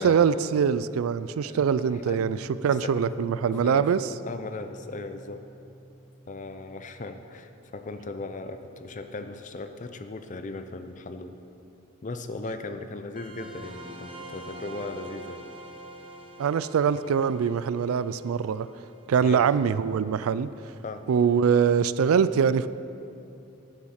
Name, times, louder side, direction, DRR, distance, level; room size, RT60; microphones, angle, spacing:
voice 1, 0.0-4.1 16.4-18.7 19.1-20.5 21.1-22.7, right 7 dB, 85° right, 16 dB, 0.3 m, -23 dB
voice 2, 1.5-2.3 2.8-5.4 6.3-11.3 12.0-15.4 19.2-19.5 20.8-21.0, left 3 dB, 35° left, 8 dB, 0.6 m, -38 dB
Piano, 2.0-9.5, equal, 15° left, 1.8 m, -48 dB
sound 1, 13.2-20.3, right 1 dB, 25° right, 1.0 m, -45 dB
11.5 x 7.1 x 6.5 m, 2.8 s
head